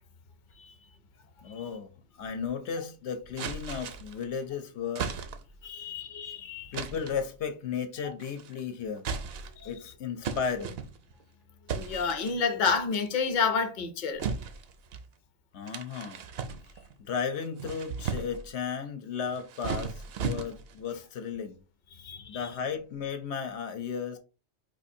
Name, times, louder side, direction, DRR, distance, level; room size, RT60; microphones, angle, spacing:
voice 1, 1.4-1.9 2.2-5.1 6.7-9.1 9.6-10.8 15.5-16.2 17.0-21.6 22.3-24.2, left 6 dB, 75° left, 0.9 m, -34 dB
sound 1, 3.4-4.2 5.0-5.6 6.7-7.2 8.2-8.6 9.0-9.7 10.2-11.2 11.7-12.3 12.7-13.1 14.2-15.1 15.7-16.9 17.4-18.5 19.2-20.8, right 6 dB, 65° right, 0.7 m, -36 dB
voice 2, 5.6-6.7 9.6-9.7 11.7-14.2 22.0-22.5, left 5 dB, 50° left, 0.7 m, -30 dB
4.3 x 2.5 x 2.6 m
omnidirectional pair, 1.2 m